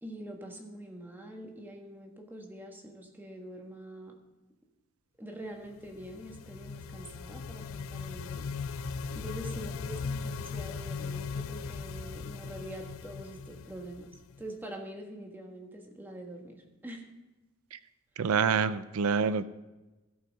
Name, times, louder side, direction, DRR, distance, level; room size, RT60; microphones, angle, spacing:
voice 1, 0.0-4.1 5.2-8.8 9.1-14.1 14.4-17.0, right 1 dB, 10° right, 1 dB, 1.5 m, -45 dB
sound 1, 5.7-14.5, left 5 dB, 70° left, 0.4 m, -39 dB
voice 2, 18.2-19.4, right 6 dB, 90° right, 14 dB, 0.4 m, -26 dB
16.5 x 5.5 x 5.4 m, 1.1 s
head